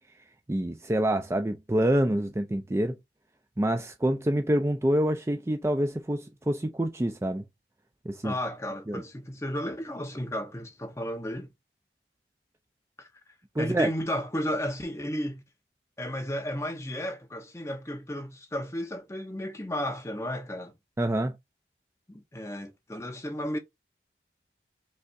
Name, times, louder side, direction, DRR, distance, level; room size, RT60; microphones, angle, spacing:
voice 1, 0.5-3.0 3.6-7.4 8.1-8.3 8.9-9.0 13.6-13.9 21.0-21.4, right 1 dB, 15° right, 0.4 m, -26 dB
voice 2, 8.2-11.5 13.0-13.1 13.6-15.4 16.0-20.7 22.1-23.6, equal, 15° left, 0.8 m, -33 dB
5.2 x 3.4 x 2.5 m
head